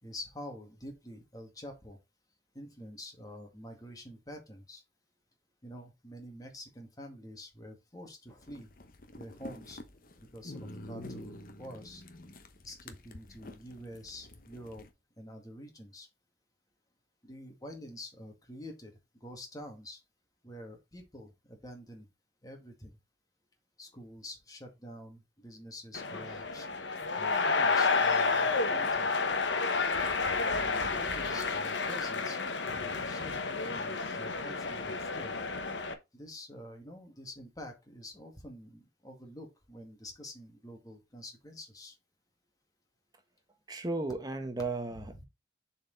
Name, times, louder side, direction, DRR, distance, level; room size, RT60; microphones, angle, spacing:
voice 1, 0.0-2.0 2.5-4.8 5.6-8.7 9.1-9.8 10.2-12.0 12.6-14.9 15.2-16.1 17.2-20.0 20.4-22.1 22.4-23.0 23.8-26.7 27.1-29.1 30.6-33.3 33.6-35.3 36.1-42.0 44.9-45.2, left 1 dB, 20° left, 2.0 m, -47 dB
sound 1, 8.3-14.9, left 1 dB, 50° left, 1.0 m, -48 dB
sound 2, 25.9-35.9, left 4 dB, 90° left, 1.1 m, -30 dB
voice 2, 43.7-45.2, right 3 dB, 20° right, 0.8 m, -35 dB
7.1 x 4.4 x 4.0 m
head